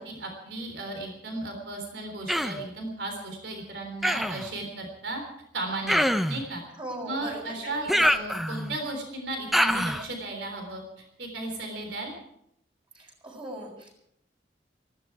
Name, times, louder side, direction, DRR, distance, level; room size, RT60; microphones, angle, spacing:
voice 1, 0.0-5.2 5.5-6.6 7.0-12.1, right 2 dB, 85° right, 3 dB, 3.6 m, -35 dB
Human voice, 2.3-2.7 4.0-4.5 5.9-6.4 7.9-8.8 9.5-10.1, equal, ahead, 0.6 m, -25 dB
voice 2, 6.8-7.7 12.9-14.0, right 1 dB, 30° right, 0 dB, 6.3 m, -39 dB
19.5 x 15.5 x 4.7 m, 0.75 s
head